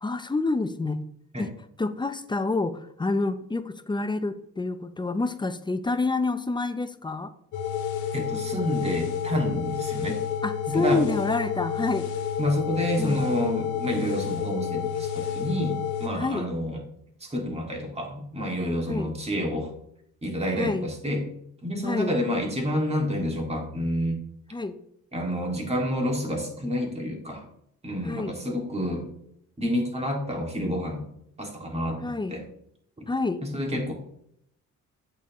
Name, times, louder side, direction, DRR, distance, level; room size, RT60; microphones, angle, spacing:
voice 1, 0.0-1.0 1.4-7.3 10.4-12.1 13.0-13.2 16.1-16.5 18.9-19.1 20.6-20.9 21.8-22.2 24.5-24.8 28.0-28.3 32.0-32.4 33.1-33.4, left 3 dB, 15° left, 11 dB, 0.5 m, -28 dB
sound 1, 7.5-16.1, left 8 dB, 85° left, 1.5 m, -30 dB
voice 2, 8.1-10.2 10.7-11.0 12.4-16.8 17.2-19.7 20.2-21.2 21.6-24.2 25.1-27.4 27.8-29.1 29.6-31.0 31.4-32.4 33.0-33.1 33.4-33.9, equal, 20° right, 1 dB, 2.2 m, -29 dB
8.4 x 6.8 x 3.1 m, 0.72 s
cardioid pair, 90°, 30 cm